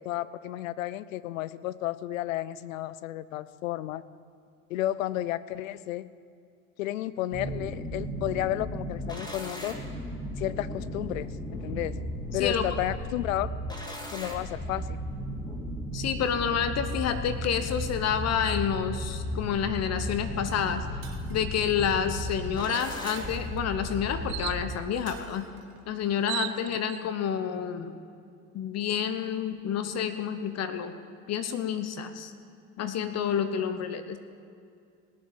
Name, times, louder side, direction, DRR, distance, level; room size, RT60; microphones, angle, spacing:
voice 1, 0.0-4.0 4.7-6.1 6.8-9.8 10.4-12.0 12.3-13.5 14.1-15.0, left 14 dB, 80° left, 17 dB, 0.6 m, -32 dB
sound 1, 7.3-24.8, equal, 10° left, 2.2 m, -35 dB
voice 2, 12.3-12.7 15.9-20.9 21.3-25.5 25.9-28.0 28.5-31.0 31.3-32.3 32.8-34.2, left 8 dB, 40° left, 10 dB, 1.0 m, -29 dB
Shatter, 21.0-21.8 23.1-23.9 25.1-25.8, right 9 dB, 65° right, 1.7 m, -50 dB
sound 2, 21.6-21.8 22.3-22.4 22.7-23.2 24.3-24.6 25.8-25.9 26.0-27.0, right 17 dB, 45° right, 0.6 m, -36 dB
18.0 x 7.5 x 7.5 m, 2.3 s
hypercardioid pair, 80°, 40 cm